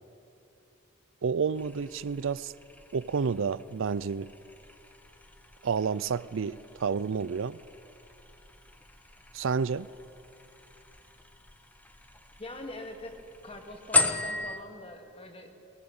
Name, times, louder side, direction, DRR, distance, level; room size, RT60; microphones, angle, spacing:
voice 1, 1.2-2.5 2.9-4.3 5.6-7.6 9.3-9.9, right 5 dB, 70° right, 18 dB, 0.4 m, -30 dB
sound 1, 1.5-14.6, left 4 dB, 10° left, 1.2 m, -37 dB
voice 2, 12.4-13.2 13.4-15.5, left 1 dB, 30° left, 4 dB, 2.3 m, -43 dB
21.5 x 20.5 x 8.8 m, 2.8 s
head